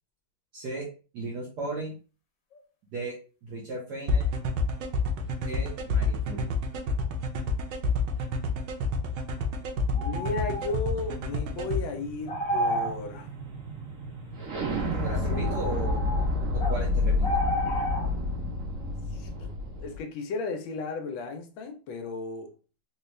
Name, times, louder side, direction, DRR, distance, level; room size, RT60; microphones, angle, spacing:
voice 1, 0.5-0.8 1.1-1.9 2.9-3.1 3.4-4.2 5.4-6.5 15.0-16.0 16.5-17.3, right 2 dB, 60° right, 1.4 m, -35 dB
sound 1, 2.5-2.6 9.9-10.7 12.3-13.0 14.7-14.9 15.3-16.8 17.2-18.1, equal, 55° left, 1.1 m, -31 dB
sound 2, 4.1-11.8, left 2 dB, 85° right, 1.5 m, -28 dB
voice 2, 9.9-13.3 14.9-15.6 19.1-19.5 19.8-22.5, left 4 dB, 85° left, 1.4 m, -35 dB
sound 3, 10.1-20.0, left 2 dB, 45° right, 1.3 m, -31 dB
4.0 x 2.3 x 3.1 m
omnidirectional pair, 2.1 m